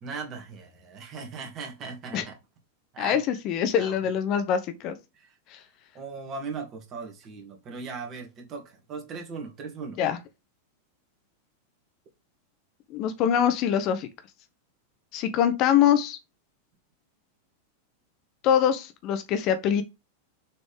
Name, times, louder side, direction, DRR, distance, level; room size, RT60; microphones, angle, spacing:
voice 1, 0.0-2.3 2.9-3.2 3.6-4.0 5.1-5.3 5.9-10.0, right 4 dB, 35° right, 2.3 m, -38 dB
voice 2, 3.0-5.0 5.5-5.6 10.0-10.2 12.9-14.1 15.1-16.2 18.4-19.8, left 9 dB, 40° left, 0.8 m, -24 dB
6.5 x 4.1 x 3.6 m
figure-of-eight pair, 90°, 0 cm